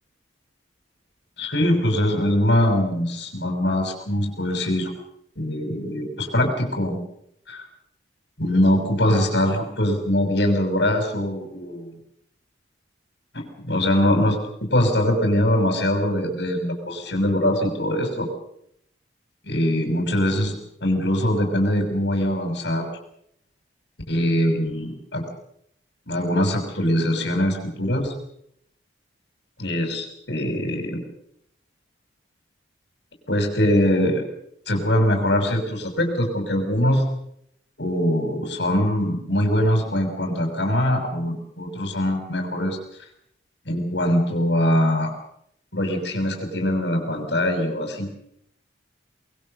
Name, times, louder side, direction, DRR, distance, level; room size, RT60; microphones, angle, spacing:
voice 1, 1.4-4.9 5.4-7.0 7.5-7.6 8.4-12.0 13.3-18.3 19.4-22.9 24.1-25.2 26.1-28.1 29.6-31.0 33.3-34.2 34.7-37.1 37.8-42.8 43.6-45.1 45.7-48.1, left 1 dB, 65° left, 2 dB, 6.1 m, -22 dB
24.5 x 22.5 x 6.6 m, 0.73 s
head